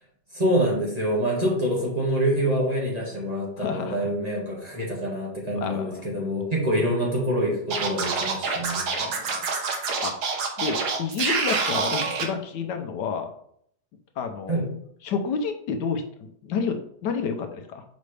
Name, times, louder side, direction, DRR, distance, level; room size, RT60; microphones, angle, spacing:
voice 1, 0.3-9.1 14.5-14.6, equal, 20° right, -4 dB, 1.8 m, -26 dB
voice 2, 3.6-4.1 5.5-6.0 9.0-9.4 10.0-10.1 10.6-13.3 14.2-14.6 15.0-17.8, left 5 dB, 80° left, 6 dB, 1.3 m, -30 dB
Scratching (performance technique), 7.7-12.2, right 4 dB, 70° right, 1.5 m, -26 dB
6.5 x 5.2 x 3.3 m, 0.67 s
omnidirectional pair, 1.9 m